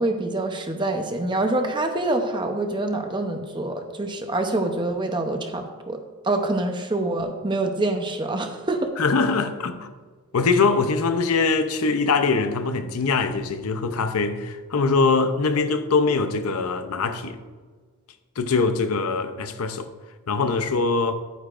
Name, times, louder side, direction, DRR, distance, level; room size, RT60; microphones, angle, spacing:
voice 1, 0.0-6.0 6.2-8.9, right 2 dB, 20° right, 0.7 m, -26 dB
voice 2, 9.0-9.9 10.3-17.4 18.4-19.9 20.3-21.1, left 4 dB, 85° left, 0.6 m, -22 dB
10.5 x 9.1 x 2.5 m
head